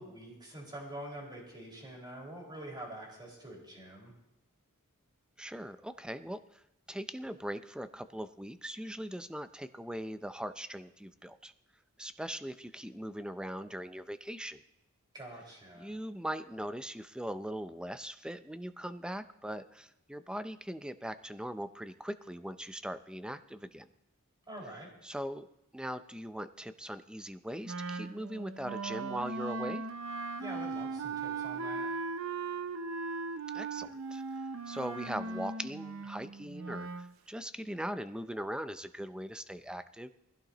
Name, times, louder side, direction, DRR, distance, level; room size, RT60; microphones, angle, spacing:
voice 1, 0.0-4.1 15.1-15.9 24.5-24.9 30.4-31.9, right 1 dB, 20° right, -2 dB, 5.2 m, -46 dB
voice 2, 5.4-6.6 6.9-11.5 12.0-14.6 15.8-23.9 25.0-25.5 25.7-29.8 33.5-34.2 34.7-40.1, equal, 5° right, 11 dB, 0.5 m, -40 dB
Wind instrument woodwind instrument, 27.6-37.1, right 4 dB, 65° right, 0.6 m, -38 dB
20.0 x 15.5 x 3.0 m, 0.88 s
head